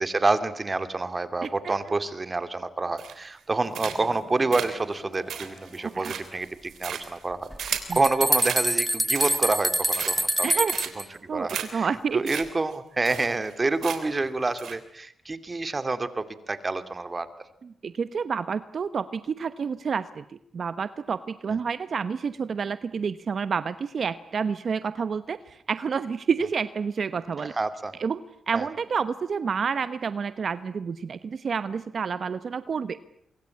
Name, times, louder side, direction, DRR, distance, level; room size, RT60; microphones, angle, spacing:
voice 1, 0.0-10.5 11.3-11.9 12.1-17.3 27.6-27.9 28.5-28.7, right 3 dB, 35° right, 11 dB, 2.6 m, -28 dB
voice 2, 1.4-1.7 5.9-6.1 7.9-8.0 10.4-10.8 11.3-12.2 17.6-27.5 28.0-33.0, right 6 dB, 60° right, 13 dB, 1.0 m, -29 dB
sound 1, 3.0-3.4 3.7-4.2 4.5-8.0 8.4-8.6 9.0-9.6 9.9-10.4 10.7-11.1 11.5-11.7 11.9-12.0 12.3-12.4 12.7-12.8 13.0-13.5 13.8-14.2 14.6-14.7, right 9 dB, 85° right, 3.2 m, -34 dB
sound 2, 3.5-6.6, left 3 dB, 40° left, 4.5 m, -49 dB
sound 3, 7.5-11.0, right 1 dB, 10° right, 1.0 m, -25 dB
25.0 x 23.0 x 8.5 m, 0.71 s
cardioid pair, 60°, 0 cm